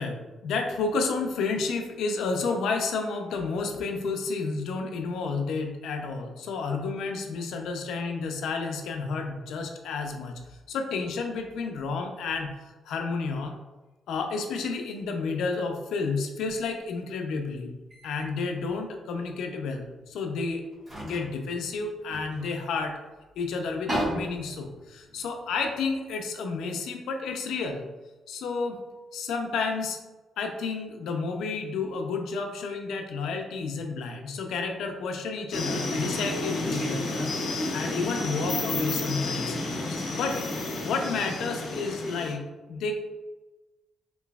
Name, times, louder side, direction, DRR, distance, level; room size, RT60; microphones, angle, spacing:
voice 1, 0.0-10.4 10.7-12.5 12.8-13.5 14.1-17.7 18.0-20.6 21.0-22.9 23.4-27.9 28.3-28.8 29.1-30.0 30.4-37.3 37.7-39.6 39.9-40.4 40.8-43.1, left 4 dB, 85° left, 4 dB, 0.5 m, -31 dB
sound 1, 17.9-18.3 18.6-18.8 20.0-20.1 20.7-22.9 23.3-23.4 23.6-26.1, right 1 dB, 30° right, 1.4 m, -36 dB
sound 2, 35.5-42.3, left 2 dB, 50° left, 0.8 m, -31 dB
4.0 x 3.0 x 2.3 m, 1.1 s
cardioid pair, 150°, 0 cm